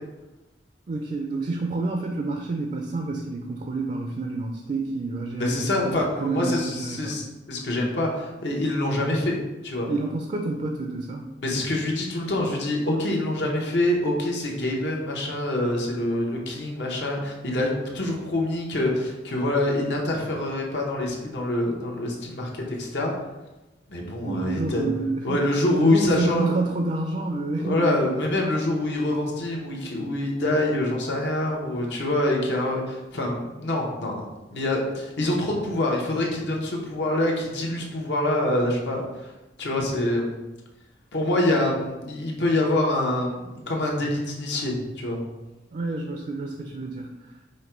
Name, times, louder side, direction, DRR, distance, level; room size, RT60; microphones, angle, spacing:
voice 1, 0.9-7.2 9.9-11.3 24.2-25.5 25.8-28.1 45.7-47.5, right 3 dB, 45° right, 3 dB, 0.4 m, -29 dB
voice 2, 5.4-9.4 9.6-9.9 11.4-23.1 23.9-24.9 25.2-26.5 27.5-34.2 34.5-39.3 39.6-40.4 41.1-45.2, left 1 dB, 80° left, -1 dB, 0.9 m, -25 dB
5.2 x 2.2 x 4.4 m, 1.1 s
head